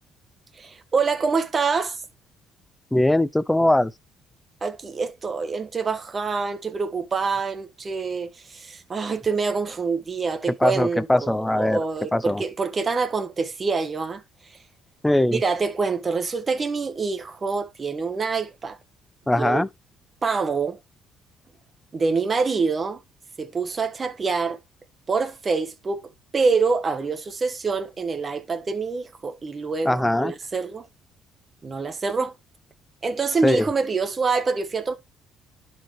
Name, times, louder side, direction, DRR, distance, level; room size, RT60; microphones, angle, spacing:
voice 1, 0.5-2.0 4.6-14.6 15.3-18.8 19.3-19.6 20.2-20.8 21.9-23.0 23.4-24.6 25.1-30.9 31.6-32.3 33.0-34.9, right 4 dB, 30° right, 1.5 m, -26 dB
voice 2, 2.9-3.9 10.6-11.8 12.1-12.4 15.0-15.4 19.3-19.7 29.8-30.3 33.4-33.7, left 1 dB, 10° left, 0.6 m, -20 dB
11.5 x 4.6 x 3.2 m
cardioid pair, 95°, 0 cm